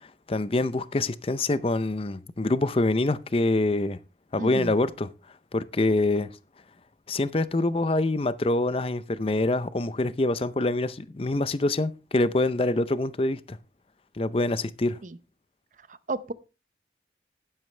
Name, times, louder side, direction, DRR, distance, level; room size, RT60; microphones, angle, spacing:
voice 1, 0.3-4.0 4.3-5.1 5.5-6.3 7.1-13.6 14.2-15.0, left 2 dB, 30° left, 0.6 m, -25 dB
voice 2, 4.4-4.8 15.0-15.2 15.9-16.3, right 3 dB, 45° right, 0.6 m, -33 dB
11.0 x 10.5 x 3.3 m
head